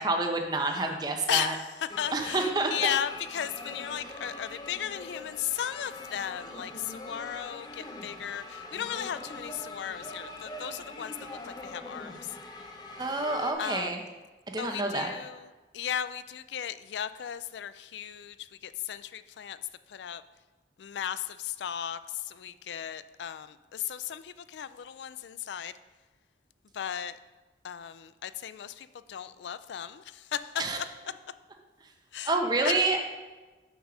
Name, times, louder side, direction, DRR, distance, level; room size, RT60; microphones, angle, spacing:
voice 1, 0.0-1.6 2.1-2.8 13.0-14.0 14.5-15.1 30.6-30.8 32.3-33.0, right 2 dB, 25° right, 3 dB, 0.8 m, -28 dB
voice 2, 1.3-12.3 13.6-14.0 14.6-15.5 15.7-19.6 19.9-20.2 20.8-25.7 26.7-27.2 27.6-30.4 32.1-32.3 32.6-32.7, left 9 dB, 80° left, 14 dB, 0.4 m, -35 dB
sound 1, 1.9-13.5, left 2 dB, 25° left, 0.7 m, -43 dB
6.1 x 5.4 x 6.1 m, 1.2 s
head